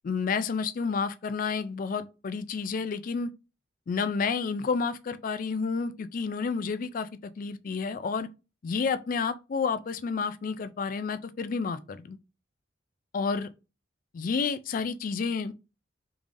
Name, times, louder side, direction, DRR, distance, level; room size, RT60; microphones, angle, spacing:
voice 1, 0.0-3.3 3.9-8.3 8.6-12.2 13.1-13.5 14.1-15.5, left 5 dB, 45° left, 0.3 m, -30 dB
3.5 x 3.2 x 2.5 m
head